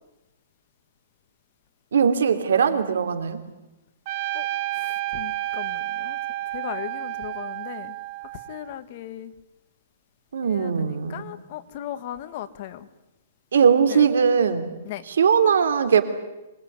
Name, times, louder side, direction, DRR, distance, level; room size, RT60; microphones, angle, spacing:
voice 1, 1.9-3.4 10.3-11.3 13.5-14.7 15.2-16.0, right 6 dB, 80° right, 9 dB, 3.3 m, -20 dB
Trumpet, 4.1-8.8, right 15 dB, 35° right, 1.0 m, -31 dB
voice 2, 4.7-6.2 6.5-7.9 8.5-9.3 10.4-12.9 13.9-14.0 14.8-15.0, left 12 dB, 40° left, 11 dB, 1.6 m, -37 dB
25.5 x 20.5 x 9.6 m, 0.99 s
hypercardioid pair, 165°, 0 cm